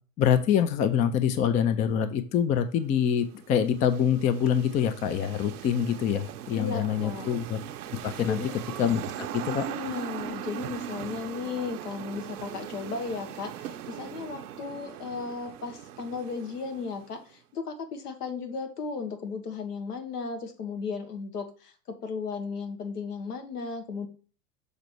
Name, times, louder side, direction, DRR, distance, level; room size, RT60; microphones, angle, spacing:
voice 1, 0.2-7.6 8.0-8.4 8.8-9.7, left 8 dB, 20° left, 11 dB, 0.4 m, -25 dB
sound 1, 2.8-17.3, right 10 dB, 70° right, 0.7 m, -40 dB
voice 2, 6.5-7.3 8.2-8.5 9.5-24.1, left 5 dB, 75° left, 6 dB, 1.7 m, -35 dB
6.6 x 4.1 x 4.6 m, 0.38 s
hypercardioid pair, 105°, 46 cm